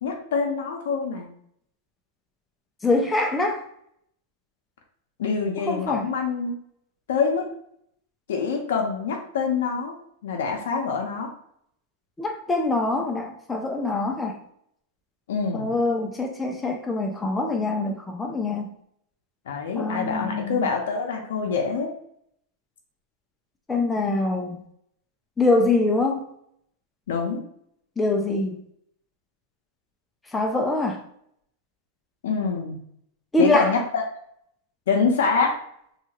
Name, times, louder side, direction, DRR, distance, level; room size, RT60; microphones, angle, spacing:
voice 1, 0.0-1.3 5.2-6.5 7.1-7.5 8.3-10.0 10.2-11.3 15.3-15.7 19.5-21.9 27.1-27.4 32.2-32.8 33.4-34.0 34.9-35.5, left 5 dB, 80° left, 2 dB, 0.6 m, -25 dB
voice 2, 2.8-3.6 5.7-6.1 12.2-14.4 15.5-18.7 19.8-20.7 23.7-24.6 25.4-26.2 28.0-28.6 30.3-31.0 33.3-33.7, left 2 dB, 10° left, 3 dB, 0.4 m, -24 dB
2.8 x 2.3 x 2.8 m, 0.70 s
supercardioid pair, 130°, 0 cm